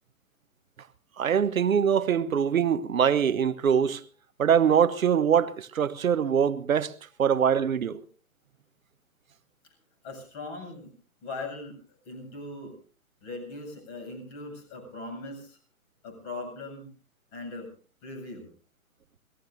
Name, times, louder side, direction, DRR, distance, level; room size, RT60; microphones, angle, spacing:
voice 1, 1.2-4.0 4.4-6.9 7.2-8.0, right 8 dB, 70° right, 1.1 m, -23 dB
voice 2, 10.0-10.9 11.2-12.8 13.2-15.6 16.0-16.9 17.3-17.7 18.0-18.5, left 2 dB, 30° left, 7.6 m, -40 dB
28.5 x 18.0 x 2.6 m
figure-of-eight pair, 135°, 43 cm